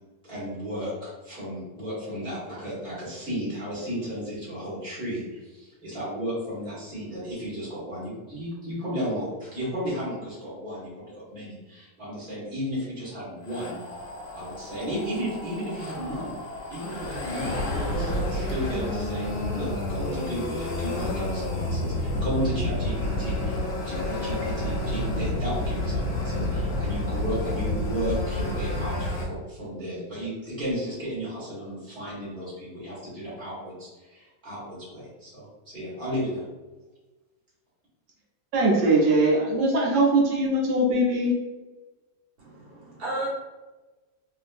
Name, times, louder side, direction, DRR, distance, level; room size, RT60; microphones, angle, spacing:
voice 1, 0.2-13.8 14.3-16.3 16.7-23.5 23.8-36.4, equal, 5° left, -10 dB, 1.0 m, -34 dB
sound 1, 13.4-29.2, left 1 dB, 65° left, 1.0 m, -29 dB
voice 2, 38.5-41.3, right 1 dB, 80° right, -2 dB, 1.4 m, -21 dB
voice 3, 42.4-43.3, right 1 dB, 55° right, -7 dB, 1.4 m, -33 dB
3.1 x 2.7 x 2.5 m, 1.2 s
omnidirectional pair, 2.1 m